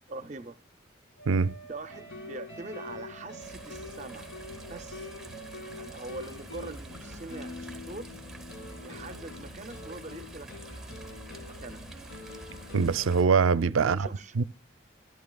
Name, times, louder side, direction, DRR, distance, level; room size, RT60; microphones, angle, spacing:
voice 1, 0.1-0.6 1.7-4.4 4.7-5.1 5.7-8.1 8.8-10.5 11.3-11.8 13.8-14.4, right 3 dB, 35° right, 0.5 m, -43 dB
Wind instrument woodwind instrument, 1.2-5.4, right 2 dB, 75° left, 1.9 m, -53 dB
sound 1, 1.9-13.2, left 2 dB, 90° left, 1.9 m, -45 dB
sound 2, 3.4-13.2, right 2 dB, ahead, 0.9 m, -47 dB
voice 2, 12.7-14.1 14.4-14.5, right 5 dB, 85° right, 0.4 m, -23 dB
14.0 x 11.0 x 2.2 m
head